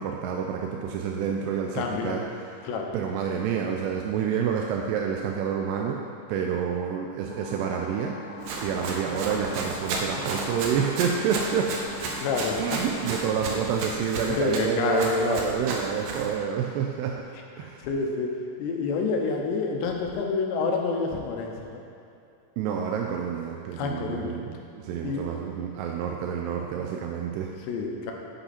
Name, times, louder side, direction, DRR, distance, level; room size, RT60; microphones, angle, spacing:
voice 1, 0.0-6.0 6.3-11.7 12.6-17.2 17.6-17.9 22.6-27.5, right 7 dB, 90° right, 1 dB, 2.7 m, -28 dB
voice 2, 1.8-2.3 2.6-2.9 12.2-12.6 14.3-15.4 17.6-18.3 18.6-21.8 23.8-24.4 25.0-25.3 27.7-28.1, left 4 dB, 85° left, 1 dB, 3.2 m, -28 dB
sound 1, 7.3-13.5, equal, 25° left, 2.5 m, -40 dB
Run, 8.4-16.3, right 3 dB, 70° right, 2.0 m, -33 dB
11.0 x 8.2 x 4.3 m, 2.6 s
omnidirectional pair, 4.8 m